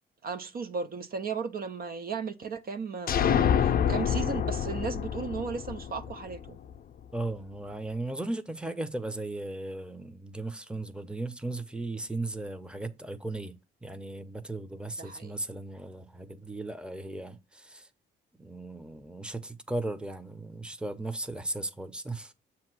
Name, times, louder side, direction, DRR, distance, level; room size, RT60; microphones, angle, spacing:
voice 1, 0.2-6.6 15.0-15.4, right 5 dB, 50° right, 0.6 m, -35 dB
sound 1, 3.1-6.8, left 8 dB, 50° left, 0.5 m, -27 dB
voice 2, 7.1-17.9 18.4-22.3, right 2 dB, 5° right, 0.8 m, -36 dB
7.2 x 3.0 x 6.0 m
cardioid pair, 90°, 20 cm